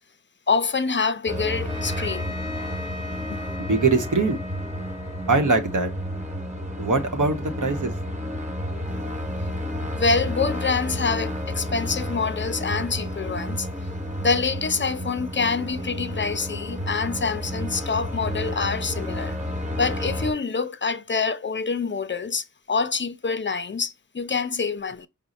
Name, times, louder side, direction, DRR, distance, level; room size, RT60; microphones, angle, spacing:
voice 1, 0.5-2.3 9.9-13.7 14.2-19.3 19.8-25.1, left 4 dB, 40° left, 0.4 m, -26 dB
sound 1, 1.3-20.3, equal, 25° right, 1.1 m, -31 dB
Trumpet, 1.7-6.5, left 2 dB, 15° left, 0.8 m, -40 dB
voice 2, 3.6-4.4 5.3-5.9 6.8-7.9, right 3 dB, 75° right, 0.9 m, -22 dB
5.1 x 2.1 x 4.0 m
wide cardioid pair, 60°, 31 cm